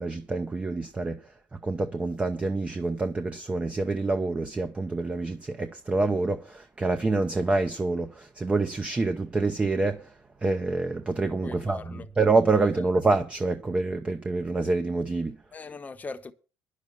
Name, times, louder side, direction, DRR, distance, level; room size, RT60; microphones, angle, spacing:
voice 1, 0.0-15.4, right 3 dB, 15° right, 0.7 m, -27 dB
voice 2, 11.4-12.1 12.8-12.9 15.5-16.3, left 4 dB, 20° left, 1.0 m, -40 dB
10.5 x 6.6 x 8.7 m
cardioid pair, 145°, 8 cm